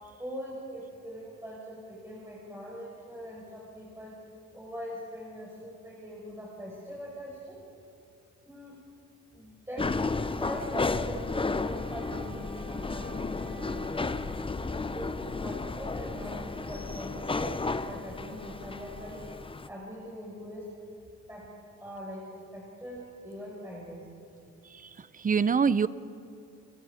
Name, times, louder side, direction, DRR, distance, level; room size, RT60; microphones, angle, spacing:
voice 1, 0.2-4.2 4.5-7.6 8.4-8.8 9.3-10.0 10.4-14.4 14.9-19.3 19.7-20.7 21.3-21.5 21.8-24.1, equal, 10° right, -5 dB, 6.1 m, -42 dB
sound 1, 9.8-19.7, left 3 dB, 15° left, 0.9 m, -33 dB
Wind instrument woodwind instrument, 11.5-19.5, right 2 dB, 75° right, 6.3 m, -51 dB
voice 2, 24.7-25.9, right 6 dB, 25° right, 17 dB, 0.7 m, -26 dB
28.5 x 21.0 x 5.1 m, 2.7 s
cardioid pair, 90°, 30 cm